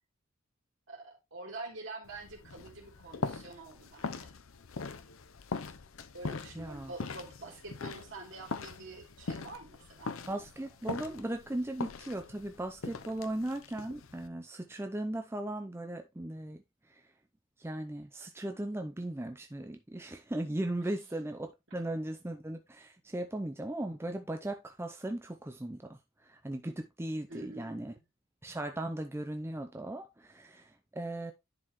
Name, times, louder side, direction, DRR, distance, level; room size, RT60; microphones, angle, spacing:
voice 1, 0.9-4.3 6.1-10.1 27.3-28.0, right 3 dB, 60° right, 3.0 m, -46 dB
sound 1, 2.0-14.3, left 4 dB, 75° left, 0.7 m, -42 dB
voice 2, 6.6-6.9 10.3-16.6 16.9-17.0 17.6-26.0 26.2-27.9 28.4-31.3, right 1 dB, 10° right, 0.5 m, -37 dB
10.5 x 4.7 x 3.0 m
head